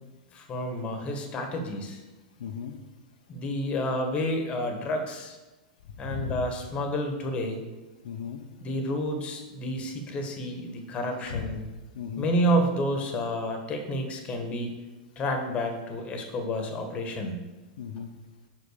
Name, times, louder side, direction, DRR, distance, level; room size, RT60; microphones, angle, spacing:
voice 1, 0.3-2.0 3.3-5.4 6.0-7.6 8.6-11.6 12.2-14.8 15.2-17.4, equal, 25° left, 4 dB, 1.4 m, -30 dB
voice 2, 2.4-2.7 6.0-6.5 8.0-8.4 11.3-11.4 11.9-12.3 17.8-18.1, left 7 dB, 75° left, 4 dB, 0.8 m, -35 dB
5.8 x 5.4 x 6.6 m, 1.2 s
hypercardioid pair, 125°, 4 cm